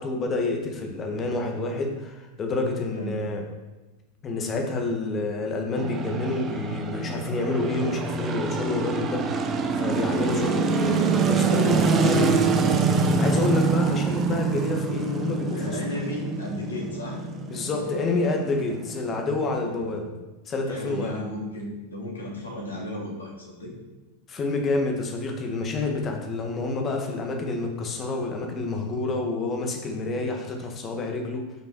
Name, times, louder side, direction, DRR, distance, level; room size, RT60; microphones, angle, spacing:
voice 1, 0.0-3.4 4.2-12.3 13.2-15.8 17.5-20.1 20.5-21.1 24.3-31.5, left 3 dB, 25° left, 2 dB, 1.7 m, -28 dB
sound 1, 5.8-20.0, right 4 dB, 25° right, 0.9 m, -25 dB
voice 2, 11.7-12.1 15.5-17.2 20.7-23.7, left 1 dB, 70° left, -2 dB, 2.9 m, -34 dB
8.5 x 6.0 x 4.6 m, 1.2 s
figure-of-eight pair, 90°, 0 cm